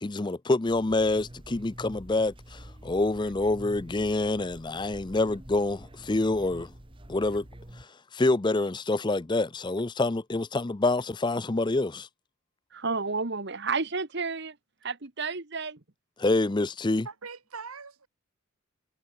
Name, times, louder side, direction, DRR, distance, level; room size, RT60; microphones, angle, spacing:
voice 1, 0.0-6.7 7.1-7.4 7.8-7.9 8.1-12.1 16.2-17.1, left 2 dB, 20° left, 0.5 m, -27 dB
sound 1, 0.7-7.8, right 1 dB, 25° right, 1.5 m, -47 dB
voice 2, 12.7-14.6 14.8-15.8, right 4 dB, 50° right, 1.5 m, -31 dB
voice 3, 17.0-18.1, right 5 dB, 90° right, 2.3 m, -42 dB
head